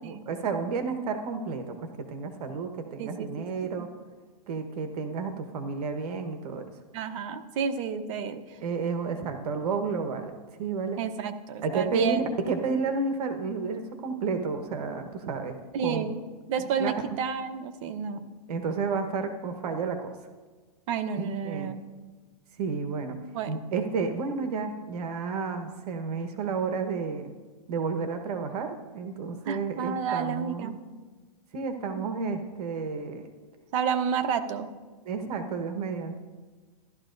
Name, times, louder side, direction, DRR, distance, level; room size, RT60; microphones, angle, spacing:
voice 1, 0.0-1.8 2.1-3.9 4.5-6.6 8.6-11.0 11.6-15.6 15.8-16.0 16.8-16.9 18.5-20.1 21.2-21.7 22.6-23.2 23.5-27.3 27.7-30.8 31.5-33.3 35.0-36.2, right 4 dB, 70° right, 7 dB, 1.2 m, -31 dB
voice 2, 3.0-3.5 3.7-3.9 6.9-8.6 11.0-12.4 15.7-16.2 16.5-18.3 20.9-21.8 23.3-23.5 29.5-30.8 32.0-32.1 33.7-34.7, right 7 dB, 50° right, 8 dB, 0.9 m, -30 dB
14.5 x 12.0 x 2.6 m, 1.3 s
hypercardioid pair, 135°, 21 cm